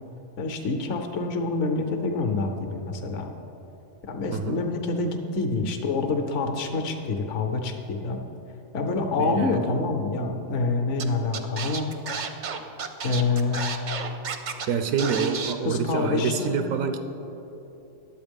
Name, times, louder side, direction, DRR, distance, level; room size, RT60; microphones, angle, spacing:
voice 1, 0.4-3.3 4.0-8.2 8.7-11.9 13.0-13.7 15.6-16.6, left 3 dB, 65° left, 5 dB, 1.1 m, -27 dB
voice 2, 9.2-9.8 14.7-17.0, right 6 dB, 85° right, 7 dB, 1.0 m, -27 dB
Scratching (performance technique), 11.0-11.1 11.3-14.7 15.0-15.5, right 5 dB, 50° right, 0.6 m, -32 dB
10.5 x 7.9 x 5.2 m, 3.0 s
omnidirectional pair, 1.4 m